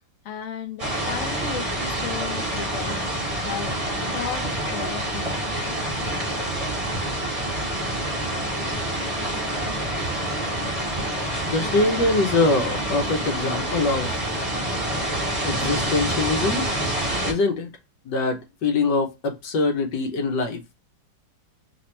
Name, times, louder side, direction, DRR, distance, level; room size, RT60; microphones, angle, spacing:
voice 1, 0.2-3.1 3.4-3.7 4.1-4.4 4.7-5.3, left 8 dB, 55° left, 0.9 m, -34 dB
sound 1, 0.8-17.3, right 1 dB, 25° right, 1.0 m, -27 dB
voice 2, 11.5-14.2 15.4-16.7 17.2-17.7 18.0-20.6, left 3 dB, 70° left, 1.3 m, -23 dB
3.4 x 2.8 x 3.1 m
omnidirectional pair, 2.1 m